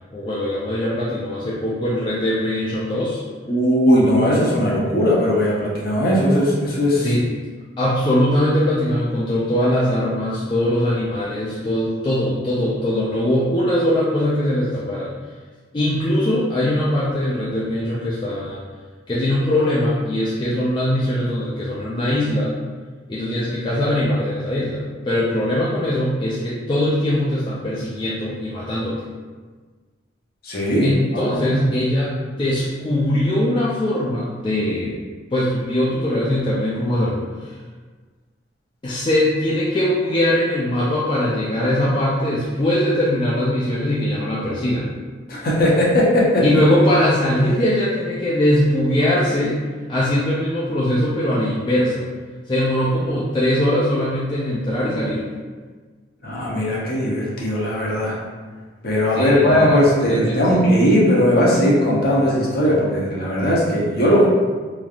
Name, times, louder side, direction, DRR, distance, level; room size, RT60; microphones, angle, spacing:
voice 1, 0.1-3.2 7.0-7.3 7.8-15.1 15.7-18.6 19.1-22.5 23.1-29.1 30.8-35.0 35.3-37.5 38.8-44.9 46.4-49.6 49.9-52.1 52.5-55.2 59.1-59.8 60.1-60.6, left 1 dB, 25° left, -7 dB, 0.3 m, -21 dB
voice 2, 3.5-7.1 30.4-31.7 45.3-46.5 56.2-58.2 58.8-64.3, equal, 50° left, -5 dB, 0.7 m, -18 dB
3.1 x 2.4 x 2.4 m, 1.4 s
head